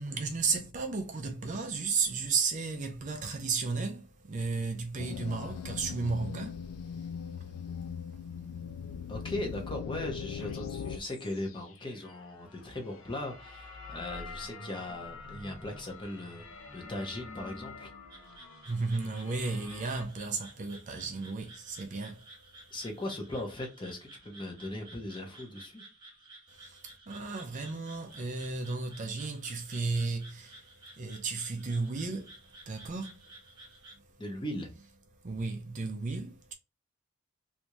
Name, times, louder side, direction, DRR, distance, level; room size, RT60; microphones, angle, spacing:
voice 1, 0.0-6.6 18.7-22.3 26.5-30.6 31.0-32.4 32.7-33.2 35.2-36.5, right 4 dB, 35° right, 0.4 m, -34 dB
sound 1, 5.0-11.0, left 7 dB, 90° left, 0.4 m, -39 dB
voice 2, 9.1-16.5 16.7-17.9 22.7-25.8 34.2-34.7, left 1 dB, 20° left, 0.8 m, -38 dB
sound 2, 10.4-20.1, left 3 dB, 70° left, 0.7 m, -48 dB
sound 3, 18.1-34.0, right 2 dB, 20° right, 1.0 m, -54 dB
3.3 x 2.6 x 3.0 m
head